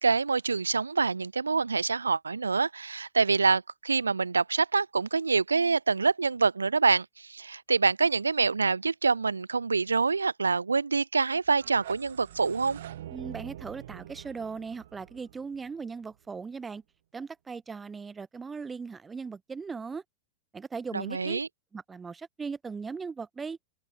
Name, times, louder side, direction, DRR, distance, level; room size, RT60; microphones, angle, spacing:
voice 1, 0.0-12.8 20.9-21.5, right 4 dB, 75° right, 0.6 m, -26 dB
sound 1, 11.4-16.3, right 12 dB, 60° right, 5.1 m, -45 dB
voice 2, 13.1-16.8 17.1-20.0 20.5-21.4 21.7-23.6, right 5 dB, 15° right, 3.5 m, -38 dB
figure-of-eight pair, 90°, 0 cm